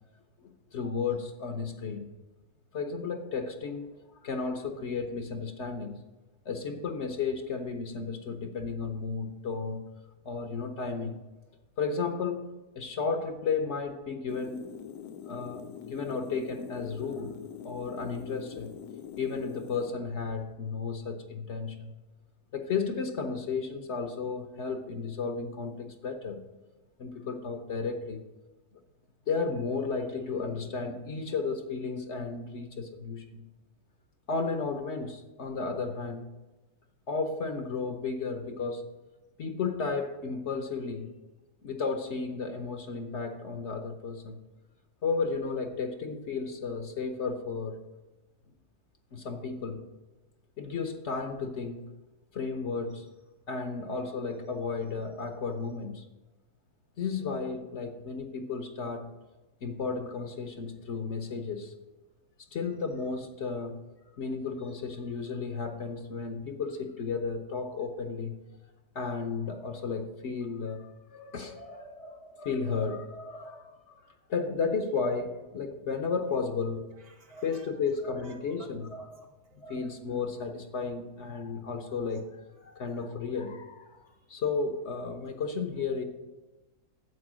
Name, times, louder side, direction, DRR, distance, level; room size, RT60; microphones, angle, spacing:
voice 1, 0.4-2.1 2.7-4.0 4.2-6.0 6.5-9.9 10.2-11.2 11.8-14.7 15.2-17.4 17.6-18.7 19.2-21.9 22.5-26.5 27.0-28.2 29.3-33.4 34.3-36.3 37.1-38.9 39.4-41.1 41.6-44.4 45.0-47.8 49.1-49.9 50.6-51.9 52.3-53.1 53.5-56.1 57.0-59.1 59.6-61.7 62.5-63.8 64.2-68.4 68.9-76.9 77.3-79.1 79.6-82.3 82.6-84.0 84.3-86.0, left 4 dB, 55° left, 1.0 m, -33 dB
sound 1, 14.3-19.9, left 9 dB, 80° left, 1.1 m, -44 dB
voice 2, 76.9-77.8 78.2-78.7 79.0-79.7 82.6-83.0 84.0-84.4, right 4 dB, 70° right, 2.4 m, -58 dB
9.7 x 7.9 x 6.2 m
omnidirectional pair, 1.6 m